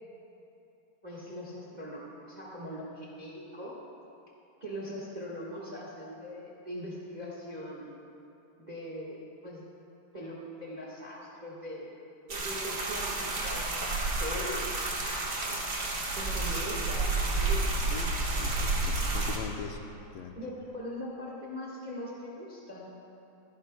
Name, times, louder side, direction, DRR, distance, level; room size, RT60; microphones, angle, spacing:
voice 1, 1.0-3.8 4.6-7.9 8.6-9.6 10.1-11.9 12.3-14.7 16.1-17.8 20.4-22.9, equal, 60° right, -5 dB, 0.4 m, -41 dB
sound 1, 12.3-19.4, right 2 dB, 45° right, 1.3 m, -30 dB
voice 2, 17.9-19.8 20.1-20.4, left 5 dB, 75° left, 4 dB, 1.5 m, -41 dB
27.5 x 10.5 x 2.2 m, 2.9 s
omnidirectional pair, 3.6 m